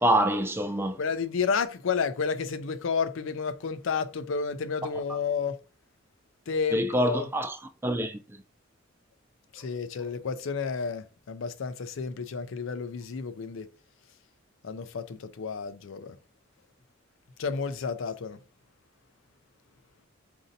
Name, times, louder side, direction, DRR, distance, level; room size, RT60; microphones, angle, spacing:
voice 1, 0.0-1.0 6.7-7.6 7.8-8.2, right 1 dB, 10° right, 0.4 m, -25 dB
voice 2, 1.0-5.6 6.5-7.3 9.5-13.7 14.6-16.2 17.4-18.4, left 5 dB, 70° left, 0.5 m, -31 dB
5.1 x 2.6 x 2.6 m
head